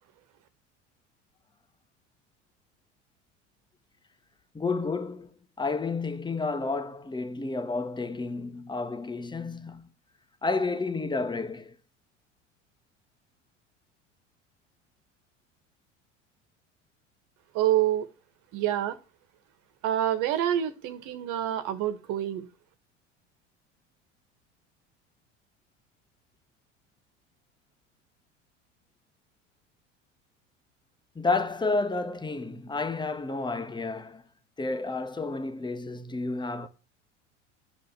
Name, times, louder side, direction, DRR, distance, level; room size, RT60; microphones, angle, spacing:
voice 1, 4.5-5.3 5.6-9.9 10.4-11.7 31.1-34.2 34.6-36.7, left 3 dB, 10° left, 1.5 m, -31 dB
voice 2, 17.5-18.1 18.5-19.0 19.8-22.5, right 12 dB, 55° right, 1.8 m, -27 dB
12.0 x 5.3 x 7.6 m
hypercardioid pair, 70°, 37 cm